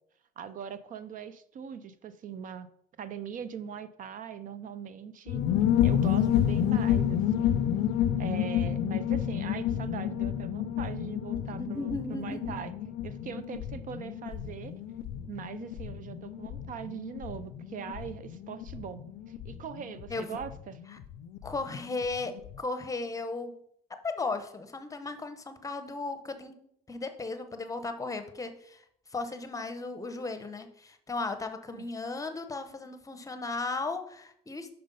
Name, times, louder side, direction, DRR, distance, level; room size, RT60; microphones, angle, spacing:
voice 1, 0.4-2.7 3.0-5.4 5.8-7.6 8.2-12.7 13.0-14.7 15.3-19.0 19.3-20.8 31.7-31.9, right 7 dB, 50° right, 13 dB, 0.5 m, -41 dB
sound 1, 5.3-21.6 21.8-21.9 22.1-22.5, left 10 dB, 75° left, 0.4 m, -30 dB
voice 2, 11.6-12.6 20.1-20.4 21.4-23.6 24.0-26.6 26.9-28.8 29.1-34.7, left 3 dB, 20° left, 9 dB, 0.8 m, -36 dB
5.7 x 5.3 x 5.3 m, 0.69 s
cardioid pair, 110°, 17 cm